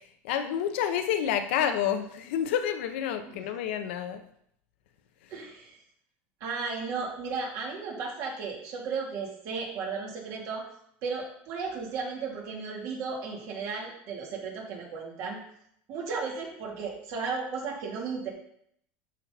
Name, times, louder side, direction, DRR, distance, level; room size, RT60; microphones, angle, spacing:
voice 1, 0.2-4.2, left 9 dB, 85° left, 7 dB, 0.9 m, -29 dB
voice 2, 5.3-5.8 6.4-10.7 11.0-15.4 15.9-18.3, right 5 dB, 55° right, -2 dB, 3.0 m, -35 dB
12.0 x 4.4 x 4.2 m, 0.70 s
supercardioid pair, 145°, 6 cm